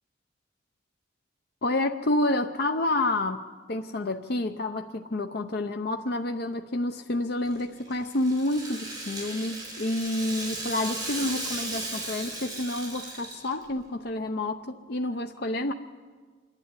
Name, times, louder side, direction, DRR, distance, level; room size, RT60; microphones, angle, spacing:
voice 1, 1.6-15.7, left 2 dB, 55° left, 6 dB, 0.7 m, -29 dB
Rattle (instrument), 7.4-13.7, right 2 dB, 20° right, 5.7 m, -36 dB
26.0 x 11.5 x 9.7 m, 1.5 s
head